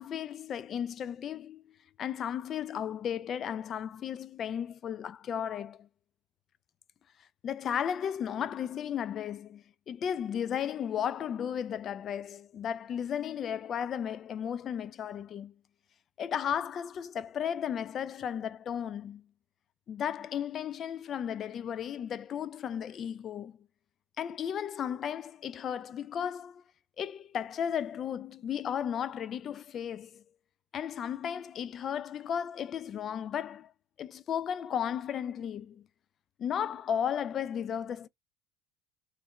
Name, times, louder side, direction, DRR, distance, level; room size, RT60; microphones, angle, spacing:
voice 1, 0.0-1.6 2.0-5.9 7.4-15.5 16.2-19.2 19.9-23.6 24.2-26.6 27.0-30.2 30.7-33.7 34.0-35.9 36.4-38.1, left 8 dB, 45° left, 0.4 m, -34 dB
3.4 x 3.2 x 3.9 m
supercardioid pair, 90°, 0 cm